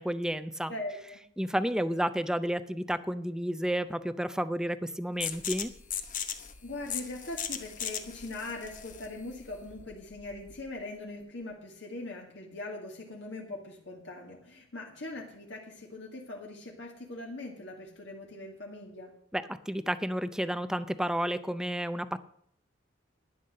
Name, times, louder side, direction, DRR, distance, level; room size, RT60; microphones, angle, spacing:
voice 1, 0.0-0.7 1.4-5.7 19.3-22.2, equal, 5° right, 13 dB, 0.5 m, -31 dB
voice 2, 0.7-1.2 6.6-19.1, left 2 dB, 65° left, 0 dB, 2.1 m, -41 dB
sound 1, 5.2-10.7, left 8 dB, 45° left, 1.1 m, -38 dB
11.5 x 10.0 x 6.5 m, 0.66 s
head